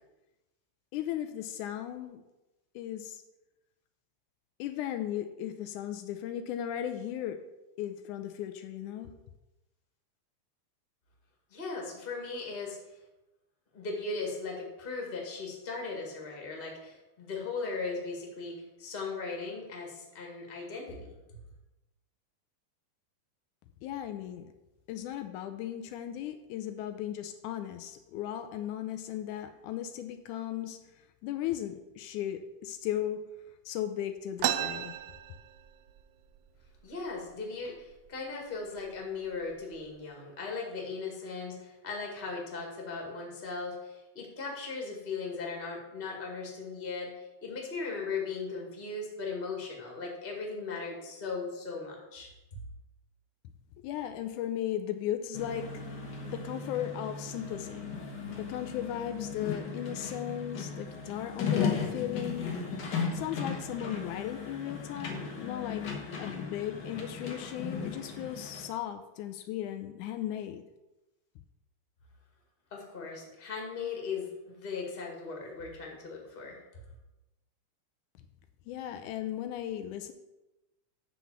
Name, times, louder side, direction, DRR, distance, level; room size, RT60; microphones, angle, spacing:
voice 1, 0.9-2.2 2.8-3.2 4.6-7.4 7.8-9.1 23.8-24.5 24.9-33.2 33.7-35.0 53.8-55.8 56.2-57.9 58.3-62.5 63.1-65.9 66.2-70.6 78.7-80.1, left 11 dB, 80° left, 8 dB, 2.0 m, -36 dB
voice 2, 11.5-12.8 13.7-21.2 36.8-52.3 72.7-76.6, left 4 dB, 25° left, 0 dB, 1.5 m, -38 dB
sound 1, 34.4-36.0 36.4-36.5 36.7-37.3 37.9-38.1 38.8-39.0 39.4-39.9, right 13 dB, 80° right, 1.9 m, -33 dB
sound 2, 55.3-68.7, left 5 dB, 55° left, 1.2 m, -36 dB
9.3 x 4.0 x 7.1 m, 1.0 s
omnidirectional pair, 3.6 m